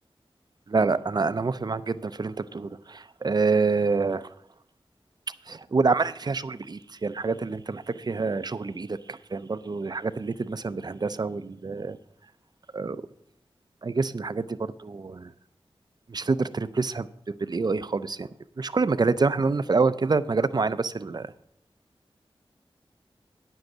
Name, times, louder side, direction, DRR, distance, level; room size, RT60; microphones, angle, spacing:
voice 1, 0.7-4.3 5.5-12.0 12.7-13.0 13.8-15.3 16.1-17.1 17.4-18.3 18.6-21.3, right 4 dB, 45° right, 14 dB, 0.5 m, -27 dB
9.4 x 7.8 x 6.1 m, 0.72 s
wide cardioid pair, 75°, 10 cm